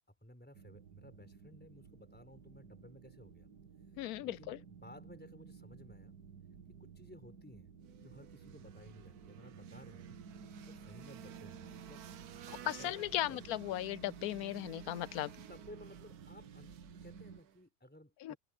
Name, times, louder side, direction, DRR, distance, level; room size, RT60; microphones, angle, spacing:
voice 1, 0.0-3.5 4.2-6.1 6.8-7.7 8.0-10.2 10.6-12.1 12.6-13.4 15.3-18.4, left 1 dB, 5° left, 4.8 m, -57 dB
sound 1, 0.5-17.4, right 6 dB, 90° right, 2.2 m, -54 dB
voice 2, 4.0-4.6 12.5-15.3 18.2-18.3, left 13 dB, 75° left, 1.1 m, -37 dB
sound 2, 7.8-17.6, right 10 dB, 75° right, 1.3 m, -55 dB
omnidirectional pair, 1.7 m